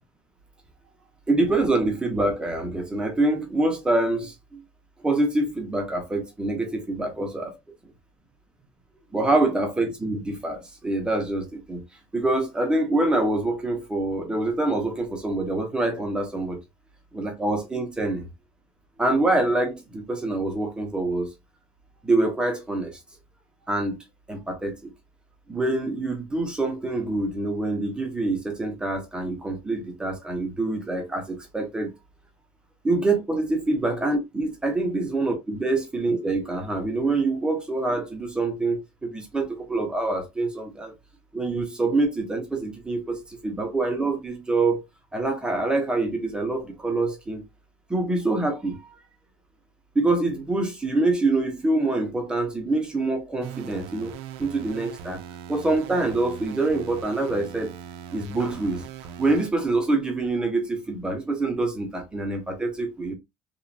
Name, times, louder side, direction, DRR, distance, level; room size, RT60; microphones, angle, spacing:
voice 1, 1.3-4.6 5.0-7.5 9.1-11.8 12.1-16.6 17.1-18.3 19.0-21.3 22.0-23.0 23.7-24.0 24.3-24.9 25.5-31.9 32.8-40.9 41.3-44.8 45.1-47.4 47.9-48.8 50.0-54.1 54.4-55.2 55.5-57.7 58.1-58.8 59.2-63.1, right 2 dB, 10° right, 0.5 m, -25 dB
sound 1, 53.4-59.5, right 8 dB, 70° right, 0.4 m, -40 dB
2.9 x 2.1 x 2.5 m
cardioid pair, 175°, 10 cm